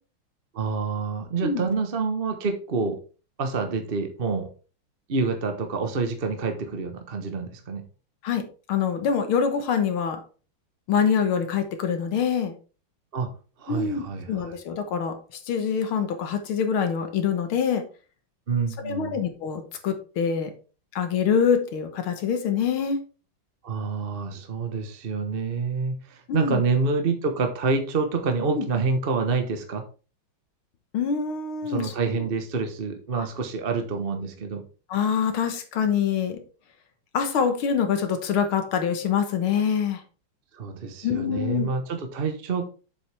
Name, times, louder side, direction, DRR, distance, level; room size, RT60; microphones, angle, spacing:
voice 1, 0.5-3.0 3.4-4.5 5.1-7.8 13.1-13.3 13.6-14.5 18.5-19.2 23.6-29.8 31.6-34.6 40.5-42.7, right 4 dB, 35° right, 6 dB, 1.0 m, -27 dB
voice 2, 8.2-10.2 10.9-12.6 13.7-15.2 15.5-17.8 18.8-20.5 20.9-23.0 26.3-26.6 28.6-28.7 30.9-32.2 33.2-33.3 34.9-36.4 37.1-40.0 41.0-41.7, left 7 dB, 90° left, 7 dB, 2.1 m, -25 dB
7.7 x 7.5 x 3.4 m, 0.35 s
omnidirectional pair, 2.2 m